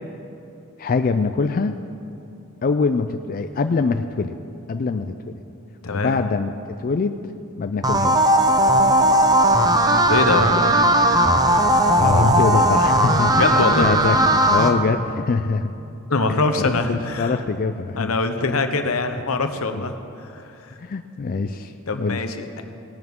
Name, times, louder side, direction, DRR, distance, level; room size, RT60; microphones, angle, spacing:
voice 1, 0.8-1.8 2.6-4.4 4.7-5.3 5.9-7.2 7.6-8.3 12.0-13.5 13.8-14.2 14.5-15.7 16.3-18.1 19.7-19.9 20.8-22.2, left 4 dB, 40° left, 8 dB, 0.4 m, -23 dB
voice 2, 5.8-6.2 9.5-11.0 13.3-13.9 16.1-17.4 18.0-20.7 21.9-22.6, left 3 dB, 80° left, 7 dB, 0.9 m, -24 dB
sound 1, 7.8-14.7, right 1 dB, 20° right, 0.7 m, -17 dB
18.5 x 12.0 x 3.7 m, 2.7 s
head